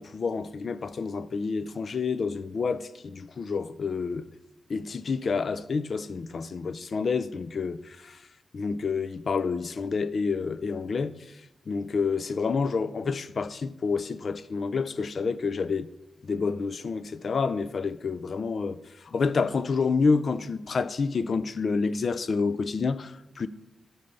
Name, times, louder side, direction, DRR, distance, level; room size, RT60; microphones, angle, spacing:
voice 1, 0.0-4.3 4.7-8.2 8.5-11.4 11.7-15.9 16.2-23.5, left 4 dB, 45° left, 0.3 m, -29 dB
8.4 x 4.1 x 6.9 m
wide cardioid pair, 175°, 0 cm